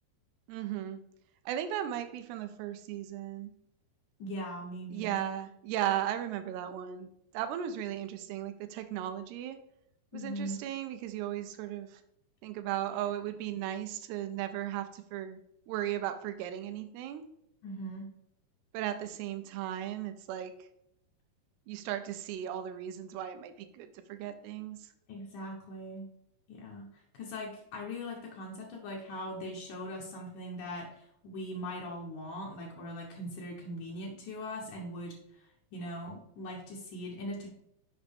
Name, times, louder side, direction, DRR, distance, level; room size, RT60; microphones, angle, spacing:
voice 1, 0.5-1.0 1.5-3.5 4.9-7.1 7.3-9.6 10.1-12.0 12.4-15.4 15.7-17.3 18.7-20.5 21.7-24.9, right 11 dB, 85° right, 8 dB, 2.4 m, -36 dB
voice 2, 4.2-5.2 10.1-10.6 17.6-18.1 25.1-26.0 26.5-26.9 27.1-37.5, equal, 80° left, -2 dB, 1.8 m, -40 dB
7.4 x 4.9 x 3.5 m, 0.77 s
omnidirectional pair, 4.9 m